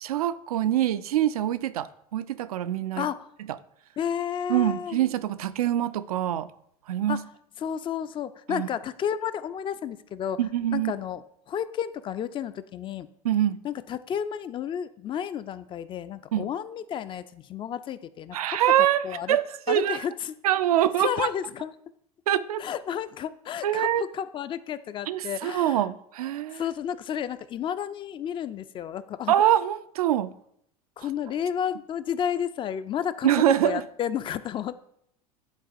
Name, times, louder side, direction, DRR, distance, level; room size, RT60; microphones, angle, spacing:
voice 1, 0.0-3.1 4.5-6.5 6.9-7.2 8.5-8.7 10.4-10.9 13.2-13.6 16.3-16.5 18.3-20.0 20.4-21.3 22.3-22.6 23.6-24.0 25.1-26.6 29.3-30.3 33.2-33.8, right 12 dB, 70° right, 0.4 m, -24 dB
voice 2, 4.0-5.0 7.1-7.2 7.6-10.4 10.7-13.1 13.6-19.4 19.7-20.3 21.0-21.7 22.6-25.9 26.5-29.3 31.0-34.8, left 9 dB, 25° left, 0.3 m, -32 dB
10.5 x 3.9 x 2.5 m
figure-of-eight pair, 80°, 19 cm